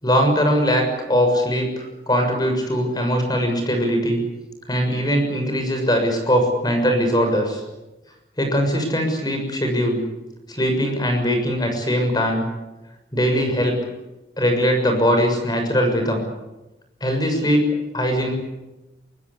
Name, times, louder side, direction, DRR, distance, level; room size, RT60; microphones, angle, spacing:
voice 1, 0.0-4.2 4.7-7.6 8.4-10.0 10.5-12.4 13.1-13.8 14.4-16.2 17.0-17.7 17.9-18.3, equal, 20° left, 4 dB, 6.6 m, -21 dB
24.5 x 23.5 x 8.4 m, 1.0 s
head